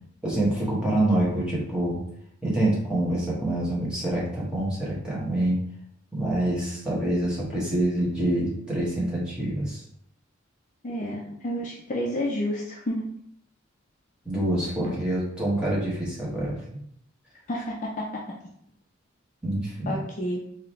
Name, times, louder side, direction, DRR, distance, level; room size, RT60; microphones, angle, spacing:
voice 1, 0.2-2.0 2.4-5.6 6.1-9.8 14.2-16.6 19.4-19.9, right 1 dB, 5° right, -7 dB, 1.4 m, -26 dB
voice 2, 10.8-13.0 14.8-15.0 17.5-18.2 19.9-20.4, left 1 dB, 40° left, -2 dB, 0.5 m, -30 dB
3.8 x 2.8 x 3.3 m, 0.70 s
head